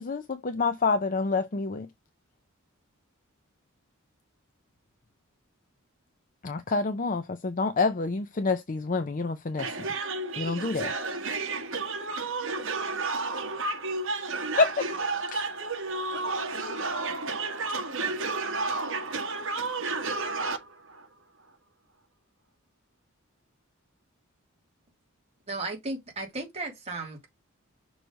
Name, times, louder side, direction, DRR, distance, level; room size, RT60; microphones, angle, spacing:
voice 1, 0.0-1.9 6.4-9.6 10.4-10.9 14.6-14.7, left 4 dB, 40° left, 0.6 m, -27 dB
voice 2, 9.6-21.6, right 3 dB, 65° right, 1.8 m, -32 dB
voice 3, 25.5-27.2, right 2 dB, 30° right, 2.9 m, -35 dB
6.3 x 3.2 x 5.1 m
head